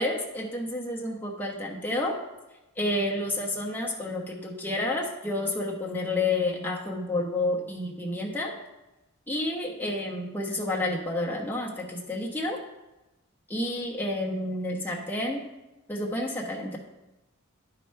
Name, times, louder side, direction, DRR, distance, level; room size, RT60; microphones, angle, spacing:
voice 1, 0.0-2.1 2.8-8.5 9.3-12.6 13.5-15.4 15.9-16.8, left 2 dB, 10° left, -2 dB, 1.1 m, -30 dB
9.9 x 5.0 x 4.5 m, 1.0 s
head